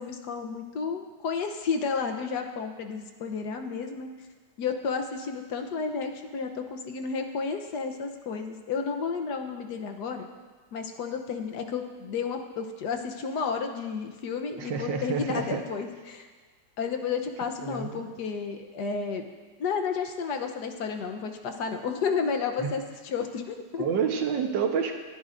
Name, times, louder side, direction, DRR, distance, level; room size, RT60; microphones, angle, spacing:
voice 1, 0.0-4.1 4.6-10.3 10.7-16.3 16.8-19.2 19.6-23.9, left 5 dB, 70° left, 5 dB, 1.4 m, -32 dB
voice 2, 14.5-15.7 17.6-18.0 22.6-22.8 23.8-25.0, right 6 dB, 85° right, 4 dB, 1.7 m, -29 dB
22.0 x 11.0 x 2.6 m, 1.4 s
omnidirectional pair, 2.0 m